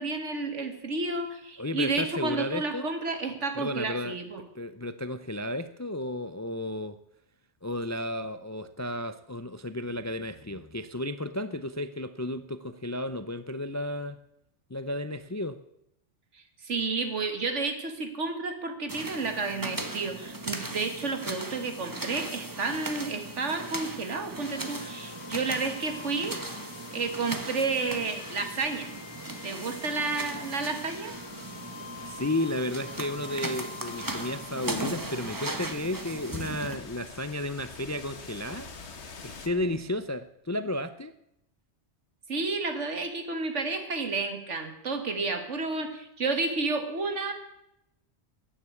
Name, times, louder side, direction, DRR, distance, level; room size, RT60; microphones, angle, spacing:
voice 1, 0.0-4.4 16.3-26.4 26.9-28.9 29.4-31.2 42.3-47.3, right 3 dB, 85° right, 7 dB, 2.0 m, -31 dB
voice 2, 1.6-2.9 3.6-4.2 4.5-7.0 7.6-14.2 14.7-15.6 32.0-38.7 39.2-41.1, left 1 dB, 30° left, 12 dB, 0.3 m, -33 dB
sound 1, 18.9-36.7, right 2 dB, 20° right, 1.2 m, -38 dB
sound 2, 24.4-40.3, left 5 dB, 70° left, 1.6 m, -46 dB
14.0 x 9.8 x 8.3 m, 0.83 s
omnidirectional pair, 1.2 m